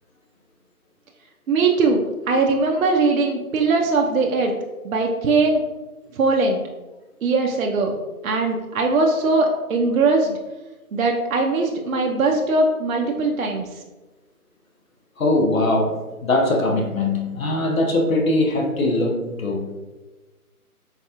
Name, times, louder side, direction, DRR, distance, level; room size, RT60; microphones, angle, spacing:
voice 1, 1.5-4.5 4.8-5.6 6.1-6.6 7.2-8.0 8.2-10.4 10.9-13.8, right 3 dB, 65° right, 1 dB, 0.5 m, -20 dB
voice 2, 15.2-19.8, left 2 dB, 65° left, 1 dB, 0.9 m, -21 dB
4.0 x 2.3 x 2.8 m, 1.2 s
hypercardioid pair, 175°, 45 cm